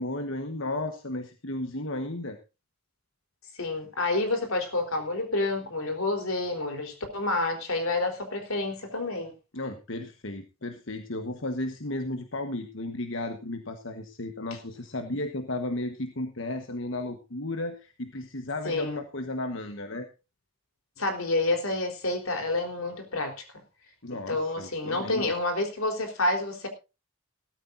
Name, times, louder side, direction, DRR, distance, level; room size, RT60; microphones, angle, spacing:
voice 1, 0.0-2.4 9.5-20.1 24.0-25.3, left 2 dB, 65° left, 7 dB, 1.3 m, -34 dB
voice 2, 3.6-9.3 18.6-19.0 21.0-23.3 24.1-26.7, left 2 dB, 85° left, 5 dB, 3.9 m, -29 dB
18.5 x 13.5 x 2.6 m, 0.29 s
head